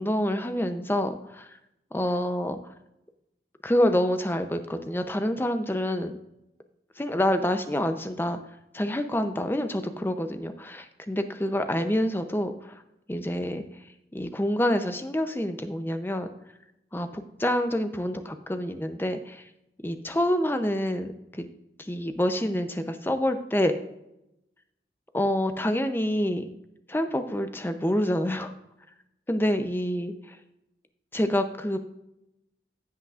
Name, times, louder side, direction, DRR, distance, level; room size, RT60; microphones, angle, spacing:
voice 1, 0.0-1.5 1.9-2.6 3.6-6.1 7.0-8.4 8.7-12.8 13.1-13.6 14.1-16.3 16.9-19.4 19.8-21.1 21.4-21.5 21.9-23.7 25.1-26.5 26.9-28.5 29.3-30.1 31.1-31.8, left 1 dB, 10° left, 8 dB, 0.6 m, -27 dB
15.5 x 5.8 x 2.5 m, 0.87 s
head